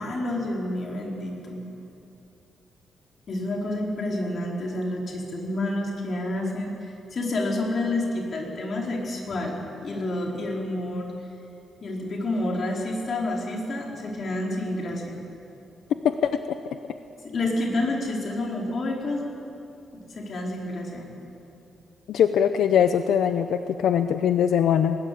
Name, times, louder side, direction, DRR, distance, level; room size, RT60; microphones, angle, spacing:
voice 1, 0.0-1.6 3.3-6.7 7.1-11.1 11.8-15.2 17.2-19.2 19.9-21.1, left 1 dB, 45° left, -1 dB, 4.6 m, -29 dB
voice 2, 16.0-16.4 22.1-25.0, left 8 dB, 90° left, 8 dB, 0.8 m, -21 dB
20.5 x 20.0 x 8.6 m, 2.7 s
cardioid pair, 135°, 0 cm